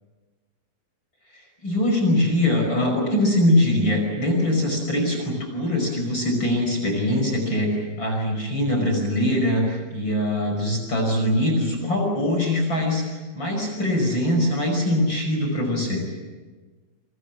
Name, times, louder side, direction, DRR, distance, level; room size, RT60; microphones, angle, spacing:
voice 1, 1.3-16.0, left 1 dB, 25° left, 2 dB, 5.8 m, -22 dB
30.0 x 23.5 x 7.6 m, 1.3 s
omnidirectional pair, 4.9 m